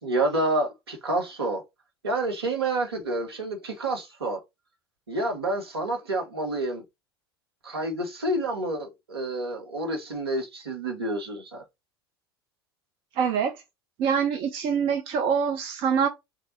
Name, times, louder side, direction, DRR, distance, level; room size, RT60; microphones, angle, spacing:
voice 1, 0.0-1.6 2.0-4.4 5.1-6.8 7.6-11.6, right 2 dB, 75° right, 1.1 m, -28 dB
voice 2, 13.2-13.5 14.0-16.1, right 7 dB, 40° right, 0.6 m, -24 dB
3.3 x 2.6 x 3.9 m
figure-of-eight pair, 75°, 13 cm